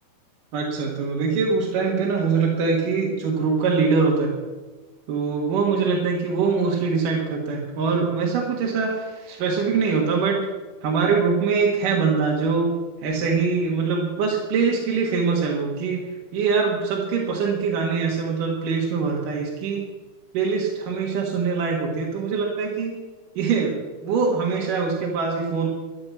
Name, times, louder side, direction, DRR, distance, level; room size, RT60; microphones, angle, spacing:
voice 1, 0.5-4.3 5.1-10.5 10.8-12.7 13.0-19.8 20.3-23.0 23.4-25.7, right 5 dB, 60° right, -2 dB, 3.0 m, -23 dB
14.0 x 10.0 x 7.2 m, 1.3 s
omnidirectional pair, 4.7 m